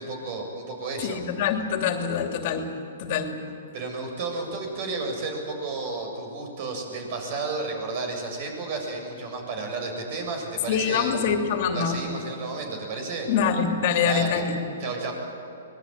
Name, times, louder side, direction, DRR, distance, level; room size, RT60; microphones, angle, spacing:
voice 1, 0.0-1.2 3.7-11.1 11.7-13.3 14.0-14.4 14.8-15.1, right 3 dB, 45° right, 3 dB, 7.4 m, -32 dB
voice 2, 1.0-2.7 3.0-3.4 10.7-12.0 13.3-14.6, left 7 dB, 50° left, 5 dB, 2.8 m, -25 dB
24.0 x 20.5 x 9.1 m, 2.9 s
hypercardioid pair, 140°, 0 cm